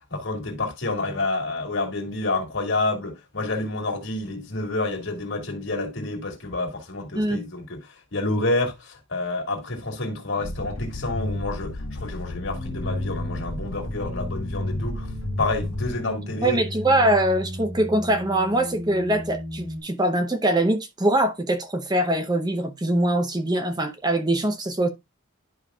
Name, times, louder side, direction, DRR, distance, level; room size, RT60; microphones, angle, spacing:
voice 1, 0.1-7.8 8.1-15.1 15.4-16.6, left 2 dB, 60° left, 2.1 m, -28 dB
sound 1, 10.4-16.2, left 1 dB, 90° left, 1.0 m, -32 dB
sound 2, 12.5-19.8, equal, 65° right, 3.8 m, -36 dB
voice 2, 16.4-24.9, right 1 dB, 20° right, 0.8 m, -23 dB
11.0 x 5.2 x 2.3 m
head